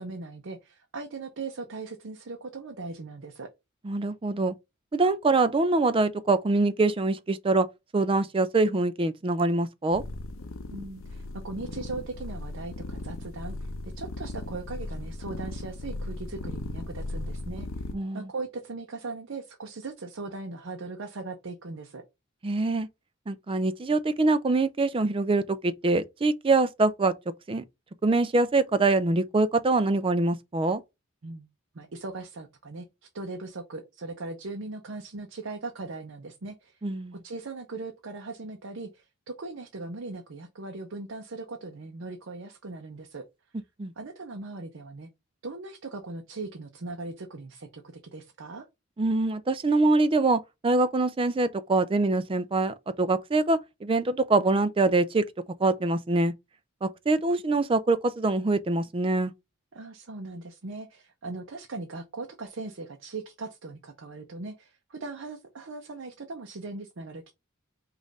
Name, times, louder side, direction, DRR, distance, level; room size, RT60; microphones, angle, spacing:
voice 1, 0.0-3.5 10.7-17.8 18.1-22.0 31.2-31.5 31.7-36.9 37.1-43.2 44.0-45.1 45.4-48.7 59.7-67.3, right 3 dB, 60° right, 0.6 m, -39 dB
voice 2, 3.8-4.5 4.9-7.7 7.9-10.0 17.9-18.3 22.4-22.9 23.3-27.1 27.5-27.6 28.0-30.8 36.8-37.2 43.8-43.9 49.0-55.3 55.6-56.3 56.8-59.3, right 3 dB, 25° right, 0.4 m, -24 dB
sound 1, 9.9-18.0, left 2 dB, 70° left, 0.6 m, -37 dB
5.2 x 2.5 x 3.9 m
head